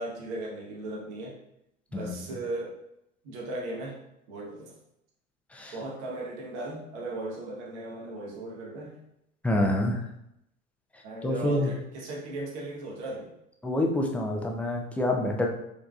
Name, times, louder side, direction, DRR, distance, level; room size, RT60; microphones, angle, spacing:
voice 1, 0.0-1.4 1.9-2.7 3.2-4.0 4.3-4.7 5.7-8.9 11.0-13.3, right 2 dB, 55° right, -1 dB, 1.2 m, -37 dB
voice 2, 9.4-10.0 11.2-11.7 13.6-15.5, left 1 dB, 5° left, 1 dB, 0.5 m, -27 dB
4.6 x 3.6 x 2.3 m, 0.81 s
figure-of-eight pair, 75°, 40 cm